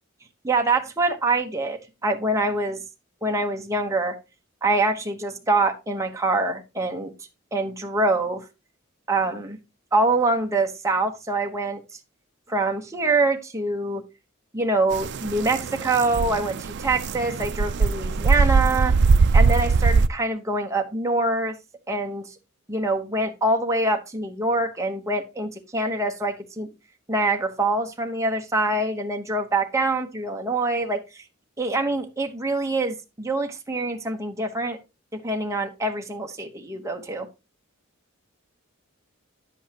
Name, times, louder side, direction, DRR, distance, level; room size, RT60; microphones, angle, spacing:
voice 1, 0.4-2.8 3.2-4.2 4.6-7.1 7.5-8.4 9.1-9.6 9.9-11.8 12.5-14.0 14.5-18.9 19.3-21.5 21.9-22.2 22.7-26.7 27.1-31.2 31.6-34.8 35.2-37.3, right 2 dB, 15° right, 3 dB, 1.0 m, -25 dB
sound 1, 14.9-20.1, right 4 dB, 55° right, 0.4 m, -21 dB
9.8 x 7.9 x 2.9 m, 0.26 s
head